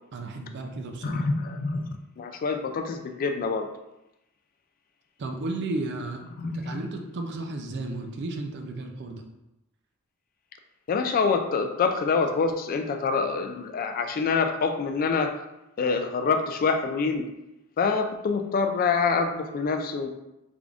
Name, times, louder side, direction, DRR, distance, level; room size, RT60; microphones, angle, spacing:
voice 1, 0.1-1.2 5.2-6.2 6.5-9.2, right 2 dB, 55° right, 4 dB, 0.5 m, -33 dB
voice 2, 1.0-1.9 2.2-3.7 6.4-6.8 10.9-15.3 15.8-17.3 17.8-20.1, left 4 dB, 40° left, 6 dB, 0.3 m, -26 dB
3.6 x 2.5 x 3.4 m, 0.90 s
head